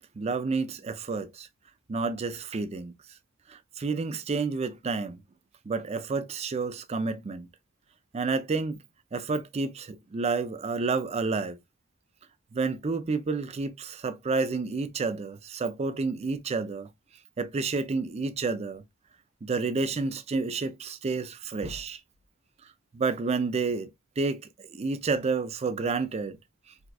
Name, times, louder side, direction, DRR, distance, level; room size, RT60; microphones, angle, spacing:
voice 1, 0.2-1.5 1.9-2.9 3.5-5.2 5.7-7.5 8.1-8.8 9.1-11.6 12.5-16.9 17.4-18.8 19.4-22.0 22.9-23.9 24.2-26.4, right 4 dB, 30° right, 0.4 m, -30 dB
4.2 x 2.2 x 2.3 m
head